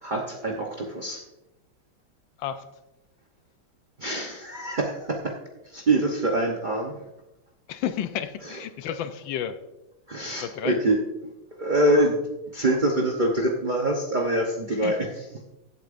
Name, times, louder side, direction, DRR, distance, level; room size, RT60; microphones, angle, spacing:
voice 1, 0.0-1.2 4.0-5.3 5.6-6.9 10.1-11.0 11.6-12.2 12.5-15.0, right 1 dB, 65° right, 0 dB, 0.4 m, -24 dB
voice 2, 7.7-9.6 10.4-10.8 14.7-15.1, left 9 dB, 75° left, 11 dB, 1.2 m, -32 dB
15.5 x 8.2 x 2.6 m, 0.98 s
omnidirectional pair, 2.4 m